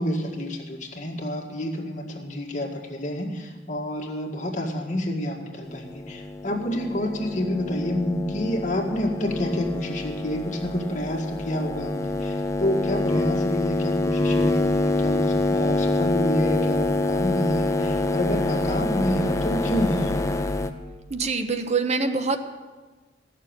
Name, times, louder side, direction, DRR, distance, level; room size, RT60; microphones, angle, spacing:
voice 1, 0.0-20.2, equal, 45° left, 1 dB, 1.9 m, -28 dB
sound 1, 5.6-20.7, left 2 dB, 20° left, 0.8 m, -26 dB
voice 2, 21.1-22.4, right 4 dB, 40° right, 7 dB, 0.9 m, -24 dB
15.5 x 6.8 x 8.9 m, 1.3 s
head